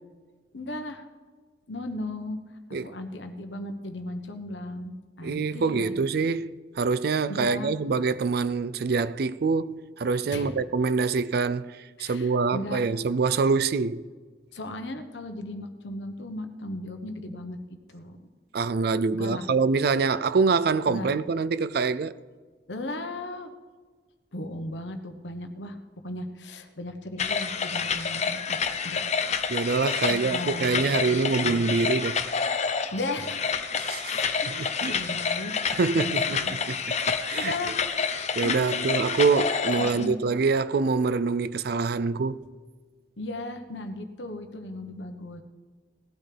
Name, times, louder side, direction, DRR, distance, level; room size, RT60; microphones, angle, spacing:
voice 1, 0.5-1.0 1.7-2.4 2.8-6.0 7.3-7.7 10.3-10.5 12.0-12.8 14.5-17.6 17.9-18.2 19.1-19.5 20.9-21.1 22.7-23.5 24.3-25.8 26.0-28.6 28.8-29.0 30.1-30.8 31.0-31.9 32.9-33.6 34.0-35.5 36.0-36.5 37.0-37.8 38.1-38.9 39.8-40.2 43.2-45.4, left 1 dB, 90° left, 1.2 m, -36 dB
voice 2, 5.2-6.5 6.7-14.1 18.5-22.1 29.5-32.3 33.8-34.2 34.5-35.0 35.8-37.5 38.4-42.4, right 4 dB, 60° right, 0.4 m, -25 dB
sound 1, 27.2-40.1, left 5 dB, 40° left, 0.7 m, -28 dB
18.0 x 12.0 x 3.4 m
head